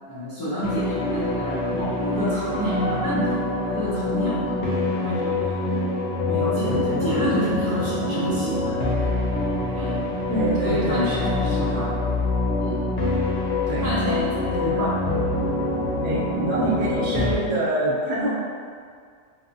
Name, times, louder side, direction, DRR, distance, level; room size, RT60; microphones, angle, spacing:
voice 1, 0.1-5.4 6.2-8.9 9.7-10.0 10.6-12.0 12.6-12.9 13.8-14.9 16.6-16.9, left 1 dB, 35° left, -12 dB, 0.4 m, -28 dB
sound 1, 0.6-17.4, left 2 dB, 75° left, 0.9 m, -25 dB
voice 2, 6.5-7.5 10.3-11.9 13.7-13.9 14.4-14.9 16.0-18.3, right 1 dB, 65° right, -7 dB, 1.0 m, -27 dB
3.3 x 2.0 x 2.6 m, 2.1 s
omnidirectional pair, 1.2 m